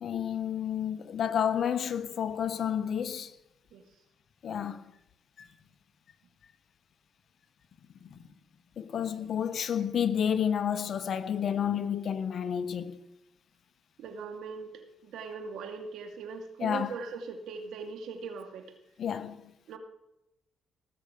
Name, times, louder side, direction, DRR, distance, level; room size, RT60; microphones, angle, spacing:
voice 1, 0.0-3.4 4.4-4.8 5.4-5.5 8.0-8.2 8.8-13.0 16.6-16.9 19.0-19.5, left 8 dB, 55° left, 1.1 m, -30 dB
voice 2, 14.0-18.7 19.7-19.8, right 4 dB, 80° right, 2.5 m, -40 dB
17.5 x 6.9 x 8.2 m
cardioid pair, 90°, 0 cm